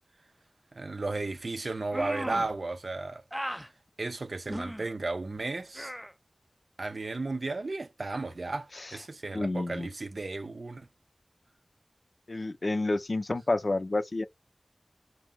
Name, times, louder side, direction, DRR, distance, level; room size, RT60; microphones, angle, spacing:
voice 1, 0.7-3.2 4.0-5.9 6.8-10.9, right 3 dB, 90° right, 0.5 m, -34 dB
sound 1, 1.9-2.6 3.3-3.7 4.5-4.9 5.8-6.1, equal, 5° right, 0.3 m, -36 dB
voice 2, 9.3-9.9 12.3-14.2, left 2 dB, 70° left, 0.4 m, -29 dB
2.6 x 2.0 x 3.4 m
wide cardioid pair, 45°, 0 cm